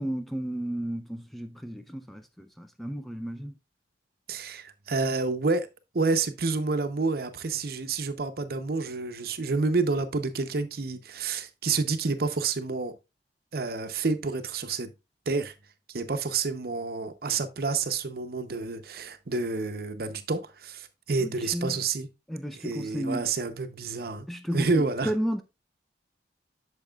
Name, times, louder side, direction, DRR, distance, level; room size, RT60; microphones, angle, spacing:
voice 1, 0.0-3.5 21.2-21.8 22.3-23.3 24.3-25.4, equal, ahead, 0.4 m, -33 dB
voice 2, 4.3-5.7 5.9-12.9 13.5-14.9 15.3-15.5 15.9-22.1 22.6-24.3 24.5-25.1, right 4 dB, 55° right, 0.7 m, -29 dB
8.8 x 6.4 x 2.3 m
head